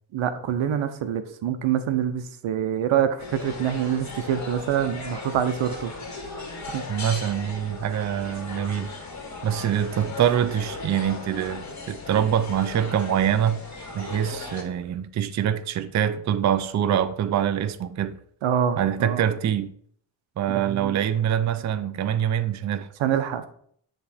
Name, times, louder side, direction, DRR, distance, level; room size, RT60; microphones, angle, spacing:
voice 1, 0.1-5.9 6.7-6.8 18.4-19.2 20.5-21.0 23.0-23.5, right 9 dB, 80° right, 0.8 m, -25 dB
sound 1, 3.2-14.6, left 3 dB, 35° left, 1.8 m, -37 dB
voice 2, 6.9-8.9 9.4-13.6 13.9-18.2 18.8-19.7 20.4-22.9, right 9 dB, 40° right, 0.4 m, -25 dB
9.5 x 3.3 x 4.2 m
cardioid pair, 100°, 46 cm